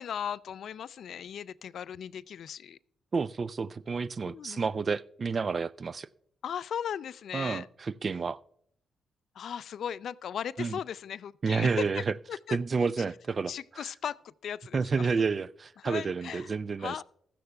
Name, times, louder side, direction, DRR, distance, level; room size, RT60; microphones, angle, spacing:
voice 1, 0.0-2.8 4.2-4.6 6.4-7.7 9.4-12.0 12.3-12.6 13.5-15.1 15.8-17.0, left 9 dB, 70° left, 0.3 m, -37 dB
voice 2, 3.1-6.1 7.3-8.4 10.6-10.8 11.4-12.1 12.5-13.8 14.7-16.9, right 5 dB, 40° right, 0.4 m, -30 dB
16.0 x 13.0 x 2.3 m
cardioid pair, 85°, 0 cm